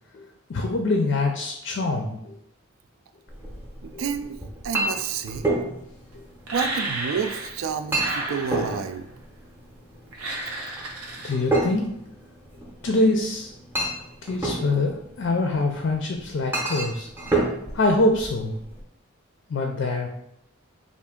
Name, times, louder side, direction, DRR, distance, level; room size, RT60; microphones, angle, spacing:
voice 1, 0.1-2.4 3.9-4.0 6.1-6.2 11.2-11.9 12.8-13.5 14.2-17.1 17.7-18.5 19.5-20.1, left 2 dB, 55° left, 3 dB, 0.4 m, -24 dB
Chink clink, 3.3-18.8, right 2 dB, 10° right, 0.6 m, -31 dB
voice 2, 3.8-5.5 6.5-9.1, right 6 dB, 70° right, 9 dB, 0.3 m, -30 dB
sound 1, 6.5-7.6 7.9-9.0 10.1-11.3, right 2 dB, 85° right, 0.7 m, -32 dB
3.4 x 2.5 x 3.6 m, 0.76 s
head